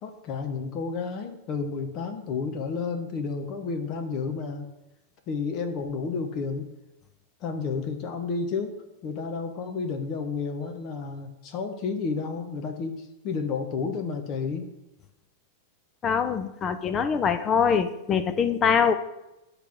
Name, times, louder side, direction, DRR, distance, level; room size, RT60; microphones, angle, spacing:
voice 1, 0.0-4.7 5.3-6.7 7.4-14.7, left 5 dB, 40° left, 5 dB, 1.0 m, -31 dB
voice 2, 16.0-18.9, left 6 dB, 25° left, 10 dB, 0.6 m, -23 dB
8.4 x 3.4 x 5.9 m, 0.95 s
supercardioid pair, 135°, 0 cm